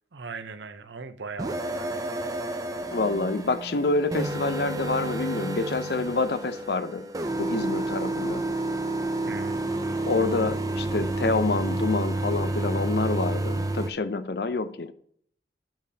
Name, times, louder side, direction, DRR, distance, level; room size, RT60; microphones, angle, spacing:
voice 1, 0.1-2.3 6.0-6.2 9.3-9.6, right 4 dB, 80° right, 0.7 m, -40 dB
sound 1, 1.4-13.9, right 2 dB, 20° right, 0.5 m, -30 dB
voice 2, 2.9-7.1 7.4-8.4 10.1-14.9, left 3 dB, 60° left, 0.6 m, -27 dB
8.9 x 8.3 x 2.8 m
head